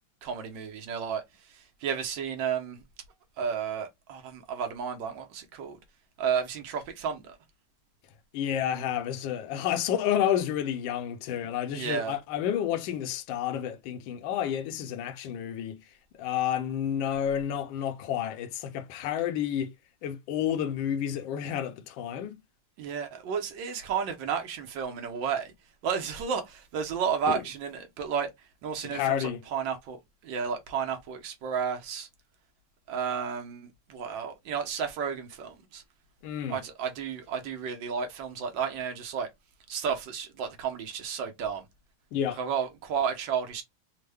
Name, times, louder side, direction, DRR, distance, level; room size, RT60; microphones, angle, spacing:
voice 1, 0.2-2.8 3.4-5.8 6.2-7.4 11.7-12.2 22.8-25.5 25.8-28.3 28.6-32.1 32.9-35.8 36.5-39.3 39.7-41.6 42.4-43.6, right 7 dB, 70° right, 1.3 m, -32 dB
voice 2, 8.3-15.9 16.2-19.7 20.0-22.4 27.3-27.4 28.9-29.4 36.2-36.6 42.1-42.4, left 10 dB, 75° left, 1.3 m, -30 dB
3.6 x 2.1 x 3.3 m
omnidirectional pair, 2.2 m